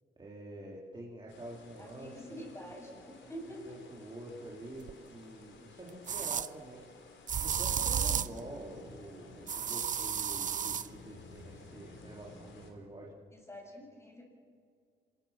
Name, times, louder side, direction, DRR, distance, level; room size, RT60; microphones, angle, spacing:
voice 1, 0.2-2.7 3.7-6.9 7.4-13.1, right 1 dB, 25° right, -3 dB, 3.8 m, -47 dB
sound 1, 1.3-12.7, left 3 dB, 70° left, 4.1 m, -54 dB
voice 2, 1.8-3.8 13.3-14.2, equal, 15° left, 0 dB, 7.5 m, -47 dB
sound 2, 4.9-5.0 6.1-6.5 7.3-8.4 9.5-10.9, right 8 dB, 40° right, 0.7 m, -32 dB
26.5 x 21.0 x 6.0 m, 2.2 s
cardioid pair, 90°, 20 cm